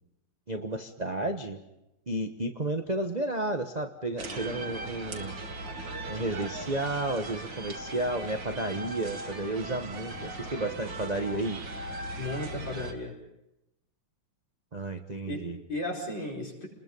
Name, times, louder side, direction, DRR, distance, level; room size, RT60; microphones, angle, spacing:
voice 1, 0.5-1.6 2.1-5.4 6.1-11.6 14.7-15.6, right 2 dB, 25° right, 5 dB, 1.0 m, -32 dB
sound 1, 4.2-12.9, right 2 dB, 55° right, 2.9 m, -39 dB
voice 2, 12.2-13.2 15.3-16.7, left 1 dB, 55° left, 0 dB, 5.6 m, -35 dB
30.0 x 21.0 x 5.5 m, 0.88 s
omnidirectional pair, 2.4 m